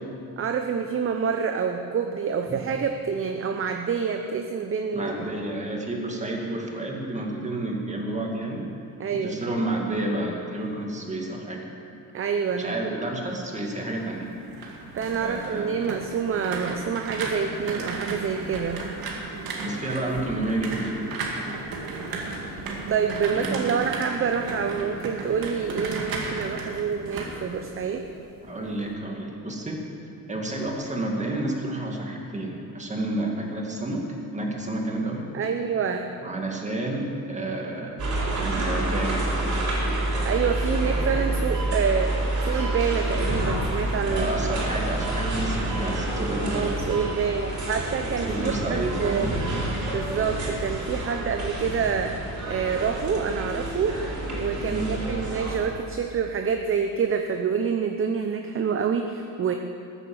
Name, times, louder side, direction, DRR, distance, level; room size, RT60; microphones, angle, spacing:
voice 1, 0.4-5.3 9.0-9.4 12.1-13.0 15.0-18.8 22.9-28.1 35.3-36.1 40.2-44.5 46.5-49.3 49.9-59.5, right 6 dB, 35° right, 5 dB, 0.8 m, -27 dB
voice 2, 4.9-8.7 9.1-11.6 12.6-14.3 15.2-15.7 19.6-21.0 23.3-23.8 28.4-29.8 30.3-34.0 34.3-35.3 36.2-38.0 38.3-39.3 44.0-46.8 48.3-49.4 54.7-55.0, right 2 dB, 20° right, 0 dB, 2.3 m, -30 dB
sound 1, 14.2-28.2 28.6-28.9, right 3 dB, 70° right, 2.1 m, -34 dB
sound 2, 38.0-55.6, right 1 dB, 50° right, 4.1 m, -28 dB
14.0 x 8.2 x 7.3 m, 2.5 s
cardioid pair, 105°, 36 cm